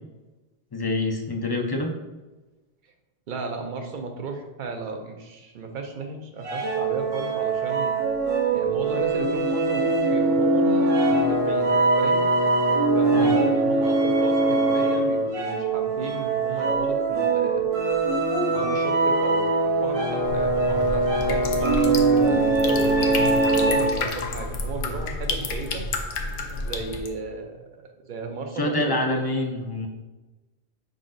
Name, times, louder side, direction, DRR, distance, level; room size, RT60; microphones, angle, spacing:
voice 1, 0.7-1.9 13.1-13.3 28.5-29.9, left 2 dB, 35° left, 2 dB, 0.4 m, -26 dB
voice 2, 3.3-7.9 8.5-12.3 12.9-17.7 18.5-23.1 23.4-25.8 26.5-27.6 28.1-29.2, right 4 dB, 55° right, 4 dB, 0.8 m, -34 dB
sound 1, 6.4-24.1, right 2 dB, 75° right, 1.1 m, -22 dB
sound 2, 20.2-27.1, left 3 dB, 65° left, 0.7 m, -31 dB
5.0 x 3.8 x 2.5 m, 1.1 s
omnidirectional pair, 1.0 m